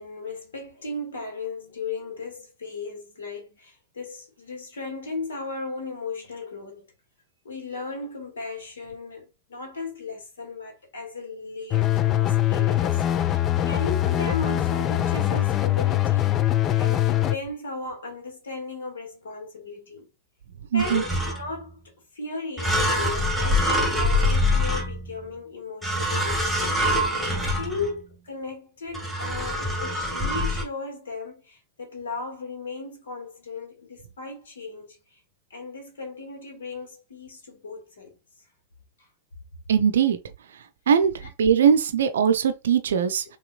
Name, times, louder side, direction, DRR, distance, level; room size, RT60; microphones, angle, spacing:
voice 1, 0.0-6.9 7.4-20.1 20.7-26.8 27.6-35.2 35.5-38.2 39.0-39.1 41.2-41.3, left 3 dB, 65° left, 2.0 m, -36 dB
sound 1, 11.7-17.4, left 12 dB, 30° left, 0.4 m, -22 dB
voice 2, 20.7-21.0 39.7-40.2 40.9-41.1 41.4-43.2, right 7 dB, 65° right, 0.6 m, -20 dB
sound 2, 20.8-21.6 22.6-25.3 25.8-28.0 28.9-30.6, left 1 dB, ahead, 1.9 m, -25 dB
5.8 x 3.0 x 2.4 m
figure-of-eight pair, 90°, 0 cm